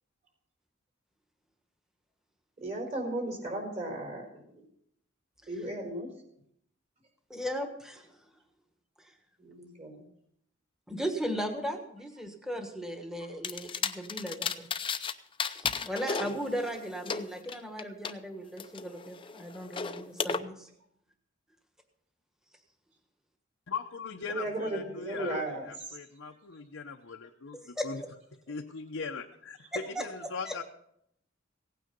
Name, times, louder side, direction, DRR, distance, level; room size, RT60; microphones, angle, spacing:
voice 1, 2.6-4.3 5.5-6.1 9.4-10.0 24.3-26.0, right 1 dB, 35° right, 1 dB, 4.2 m, -35 dB
voice 2, 7.3-8.1 9.0-9.1 10.9-14.7 15.5-20.7 27.8-27.9 29.7-30.6, equal, 5° right, 5 dB, 1.4 m, -37 dB
sound 1, 13.4-15.1 15.4-18.1 18.6-20.4, left 5 dB, 25° left, 0.6 m, -34 dB
voice 3, 23.7-28.0 28.5-30.6, left 5 dB, 80° left, 1 dB, 0.8 m, -40 dB
17.0 x 9.2 x 5.3 m, 0.73 s
head